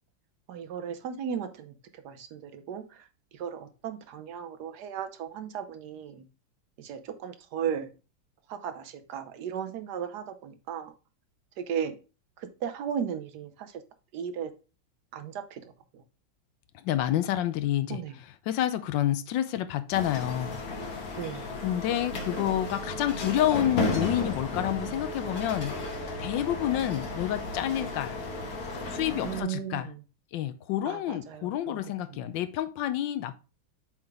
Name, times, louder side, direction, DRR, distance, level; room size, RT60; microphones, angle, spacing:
voice 1, 0.5-1.7 2.0-2.8 3.3-6.2 6.8-7.9 8.5-10.9 11.6-12.0 12.6-13.7 14.1-14.5 15.1-15.6 15.9-16.0 17.9-18.1 21.1-21.6 29.2-29.9 30.9-31.8 32.1-32.3, right 8 dB, 65° right, 1.1 m, -35 dB
voice 2, 16.7-21.0 21.6-28.2 28.9-29.9 30.3-33.3, left 12 dB, 75° left, 1.1 m, -29 dB
sound 1, 19.9-29.4, left 2 dB, 50° left, 1.3 m, -34 dB
7.8 x 3.6 x 3.5 m
omnidirectional pair, 2.3 m